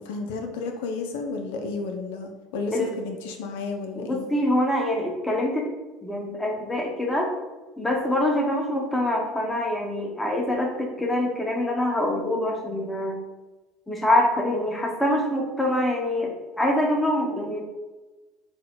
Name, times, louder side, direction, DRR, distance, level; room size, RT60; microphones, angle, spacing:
voice 1, 0.0-4.3, left 4 dB, 80° left, 3 dB, 0.5 m, -32 dB
voice 2, 3.9-5.7 6.0-7.3 7.8-13.2 13.9-17.6, left 1 dB, 10° left, 1 dB, 1.0 m, -25 dB
4.4 x 2.2 x 3.9 m, 1.2 s
hypercardioid pair, 80°, 0 cm